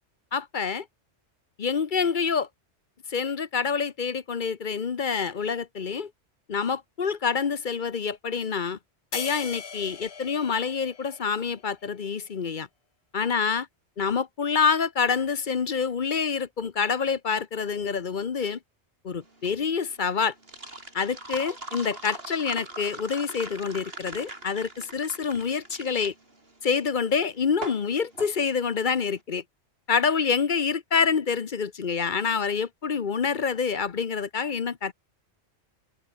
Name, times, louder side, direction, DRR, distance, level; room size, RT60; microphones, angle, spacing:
voice 1, 0.3-0.9 1.6-2.5 3.1-6.1 6.5-8.8 9.1-12.7 13.1-13.6 14.0-18.6 19.0-20.3 20.9-26.1 26.6-29.4 29.9-34.9, left 6 dB, 50° left, 1.0 m, -27 dB
sound 1, 9.1-11.7, left 6 dB, 65° left, 1.6 m, -39 dB
sound 2, 19.2-29.1, right 2 dB, 60° right, 4.7 m, -41 dB
omnidirectional pair, 1.1 m